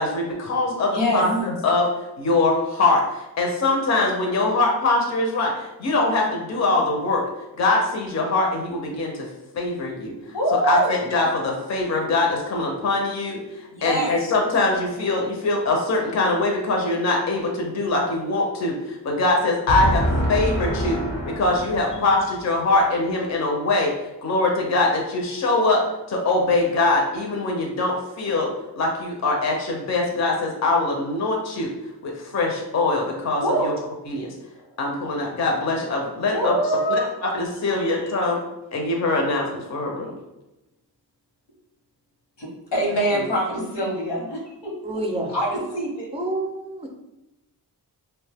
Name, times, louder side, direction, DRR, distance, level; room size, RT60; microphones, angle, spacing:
voice 1, 0.0-1.9 2.2-7.3 7.6-9.3 9.5-10.1 10.5-20.0 20.3-21.0 21.4-23.9 24.2-25.8 26.1-31.7 32.0-33.7 34.1-34.3 34.8-36.5 36.9-37.0 37.3-38.4 38.7-40.2, left 2 dB, 40° left, 0 dB, 0.5 m, -23 dB
voice 2, 0.9-1.2 10.3-10.9 13.7-14.1 19.7-22.0 33.4-33.7 36.3-37.2 37.8-38.1 42.4-44.7 45.3-46.1, right 1 dB, 80° left, -2 dB, 1.0 m, -24 dB
voice 3, 44.8-45.3 46.1-46.9, right 1 dB, 15° right, 2 dB, 0.4 m, -29 dB
2.6 x 2.2 x 3.3 m, 0.96 s
wide cardioid pair, 75°, 41 cm